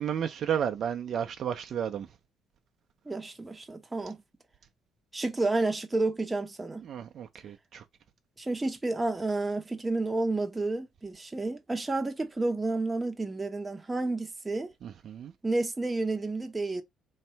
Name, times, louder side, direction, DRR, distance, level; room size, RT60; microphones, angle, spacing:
voice 1, 0.0-2.1 6.8-7.8 14.8-15.3, right 9 dB, 55° right, 0.6 m, -32 dB
voice 2, 3.1-4.2 5.1-6.8 8.4-14.7 15.4-16.8, right 2 dB, 15° right, 0.8 m, -30 dB
3.3 x 2.7 x 4.5 m
cardioid pair, 120°, 0 cm